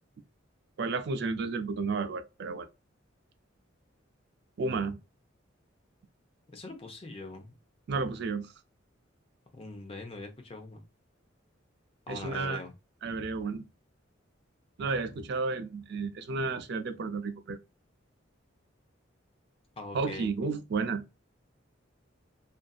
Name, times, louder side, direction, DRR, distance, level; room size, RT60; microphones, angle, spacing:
voice 1, 0.8-2.7 4.6-5.0 7.9-8.5 12.1-12.6 13.0-13.6 14.8-17.6 19.9-21.0, right 4 dB, 55° right, 0.4 m, -32 dB
voice 2, 6.5-7.5 9.5-10.8 12.1-12.7 19.8-20.3, left 2 dB, 30° left, 0.6 m, -42 dB
2.6 x 2.5 x 2.3 m
head